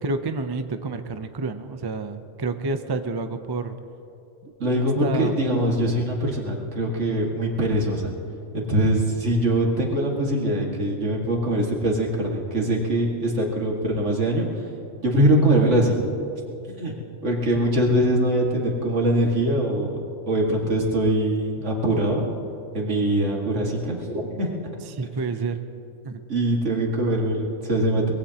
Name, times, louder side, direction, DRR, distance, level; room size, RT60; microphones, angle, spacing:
voice 1, 0.0-3.7 5.0-5.3 10.1-10.2 15.5-15.6 17.5-17.7 24.9-25.6 26.0-26.2, right 3 dB, 30° right, 8 dB, 0.4 m, -29 dB
voice 2, 4.6-8.1 8.5-14.5 15.0-16.0 16.5-16.9 17.2-20.0 20.3-22.3 22.7-24.5 26.3-28.1, right 1 dB, 65° right, -1 dB, 2.3 m, -22 dB
23.5 x 20.5 x 2.9 m, 2.8 s
omnidirectional pair, 1.3 m